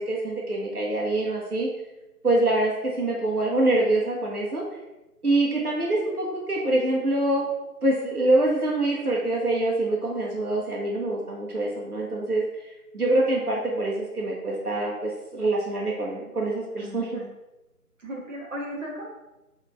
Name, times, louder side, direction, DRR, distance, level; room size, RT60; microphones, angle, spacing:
voice 1, 0.0-1.7 2.2-4.6 5.2-7.5 7.8-12.4 12.9-17.0, right 2 dB, 70° right, -3 dB, 1.7 m, -25 dB
voice 2, 16.8-17.3 18.0-19.0, equal, 55° right, -5 dB, 1.7 m, -36 dB
6.5 x 4.0 x 3.6 m, 1.0 s
figure-of-eight pair, 160°, 46 cm